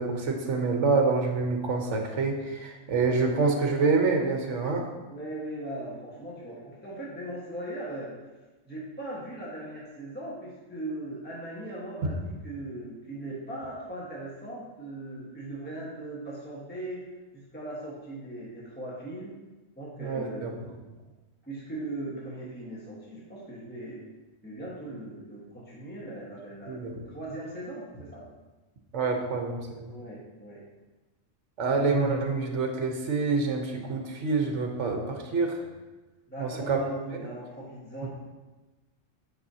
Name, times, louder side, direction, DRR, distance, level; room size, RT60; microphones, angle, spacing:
voice 1, 0.0-4.9 12.0-12.1 20.0-20.5 26.7-27.1 28.9-29.9 31.6-35.6 36.4-36.8, right 4 dB, 70° right, 3 dB, 1.2 m, -27 dB
voice 2, 5.1-8.1 8.6-17.0 17.3-19.3 19.8-20.9 21.4-24.0 24.4-28.2 29.9-30.6 36.3-38.1, right 1 dB, 10° left, -6 dB, 1.3 m, -39 dB
9.3 x 5.6 x 2.8 m, 1.2 s
omnidirectional pair, 1.3 m